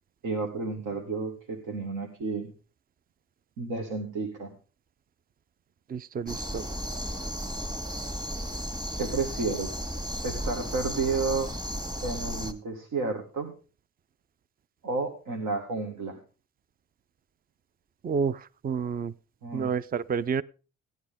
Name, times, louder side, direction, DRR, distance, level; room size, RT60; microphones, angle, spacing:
voice 1, 0.2-2.5 3.6-4.5 9.0-9.8 10.2-11.5 12.0-13.5 14.8-16.2 19.4-19.7, right 4 dB, 80° right, 2.0 m, -31 dB
voice 2, 5.9-6.7 18.0-19.1 19.5-20.4, right 6 dB, 30° right, 0.5 m, -29 dB
sound 1, 6.3-12.5, equal, 15° right, 1.9 m, -34 dB
16.0 x 9.8 x 3.6 m
cardioid pair, 90°, 30 cm